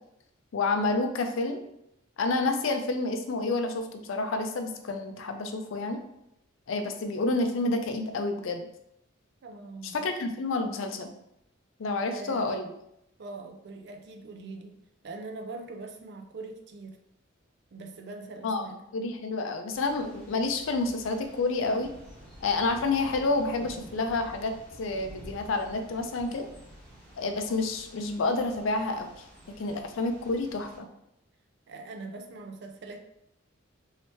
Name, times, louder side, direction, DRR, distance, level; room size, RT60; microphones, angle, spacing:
voice 1, 0.5-1.6 2.2-6.0 6.7-8.7 9.9-11.1 11.8-12.7 18.4-18.7 18.9-21.9 22.4-26.5 27.2-29.1 29.6-30.9, left 3 dB, 70° left, 6 dB, 0.4 m, -29 dB
voice 2, 9.4-10.1 12.1-12.6 13.2-14.8 15.0-17.0 17.7-18.8 31.7-33.0, right 3 dB, 55° right, 5 dB, 0.4 m, -42 dB
Thunder / Rain, 19.7-30.8, right 1 dB, 5° left, 1.0 m, -50 dB
3.2 x 2.8 x 3.0 m, 0.80 s
head